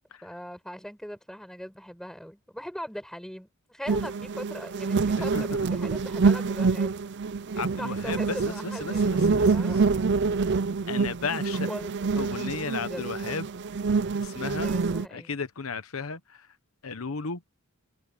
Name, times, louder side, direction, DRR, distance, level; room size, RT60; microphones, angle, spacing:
voice 1, 0.2-7.0 7.5-9.9 11.7-12.1 12.8-13.6 14.6-15.4, equal, 5° left, 7.9 m, -40 dB
sound 1, 3.9-15.1, right 4 dB, 55° right, 0.6 m, -26 dB
voice 2, 7.6-9.4 10.9-11.7 12.2-13.4 14.2-14.7 15.1-16.5 16.8-17.4, left 5 dB, 85° left, 1.0 m, -34 dB
head